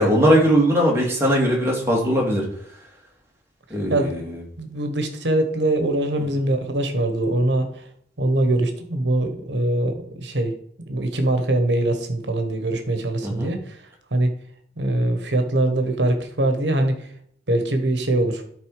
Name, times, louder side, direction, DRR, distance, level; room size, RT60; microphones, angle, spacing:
voice 1, 0.0-2.4 3.7-4.2 13.2-13.5, equal, 15° right, -2 dB, 2.4 m, -19 dB
voice 2, 3.9-4.3 4.6-7.8 8.2-10.5 10.9-13.8 14.1-14.3 14.8-17.1 17.5-18.4, right 1 dB, 75° right, 6 dB, 1.4 m, -22 dB
12.0 x 4.1 x 4.8 m, 0.66 s
head